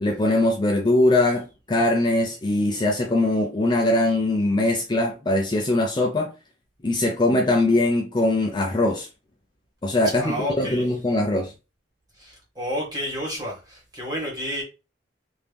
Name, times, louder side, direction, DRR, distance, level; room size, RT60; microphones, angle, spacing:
voice 1, 0.0-6.3 6.8-9.1 9.8-11.5, left 1 dB, 25° left, 0.4 m, -21 dB
voice 2, 10.2-10.9 12.1-14.6, equal, 20° right, 1.7 m, -30 dB
3.0 x 2.6 x 3.4 m
head